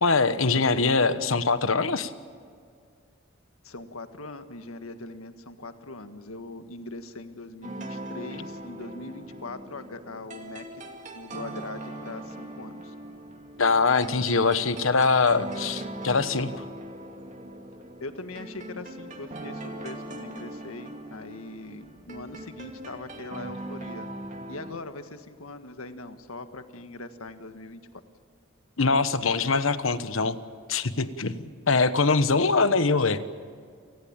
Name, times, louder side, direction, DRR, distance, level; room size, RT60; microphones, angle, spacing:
voice 1, 0.0-2.1 13.6-16.6 28.8-30.4 30.7-33.2, left 4 dB, 70° left, 12 dB, 1.2 m, -23 dB
voice 2, 3.6-10.8 11.1-12.9 18.0-24.1 24.5-28.0, left 2 dB, 90° left, 9 dB, 1.7 m, -41 dB
sound 1, 7.6-24.8, right 1 dB, 35° right, 2.5 m, -40 dB
29.0 x 19.0 x 8.9 m, 2.2 s
head